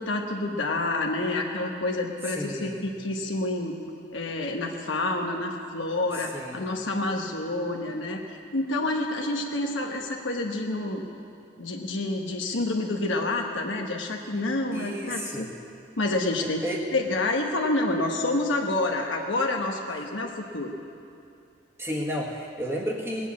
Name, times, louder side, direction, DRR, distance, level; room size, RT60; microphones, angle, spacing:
voice 1, 0.0-3.8 4.1-11.0 11.6-15.5 16.0-16.6 16.9-20.7, left 2 dB, 80° left, 1 dB, 1.2 m, -28 dB
voice 2, 2.3-2.9 6.2-6.6 14.7-15.5 16.6-16.9 21.8-23.3, equal, 15° right, -2 dB, 1.7 m, -32 dB
19.5 x 7.9 x 8.5 m, 2.5 s
head